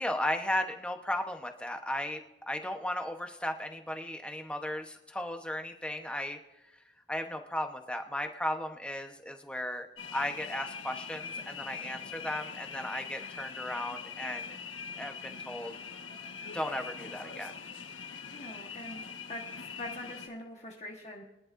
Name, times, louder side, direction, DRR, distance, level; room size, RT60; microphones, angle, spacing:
voice 1, 0.0-2.2 2.5-6.4 7.1-9.9 10.1-14.6 15.0-15.7 16.5-17.5, left 1 dB, 5° left, 4 dB, 1.0 m, -35 dB
sound 1, 10.0-20.3, left 6 dB, 85° left, 1.4 m, -43 dB
voice 2, 18.3-19.0 19.3-19.4 19.7-21.2, left 1 dB, 35° left, -1 dB, 1.4 m, -43 dB
23.5 x 11.0 x 2.6 m, 0.96 s
head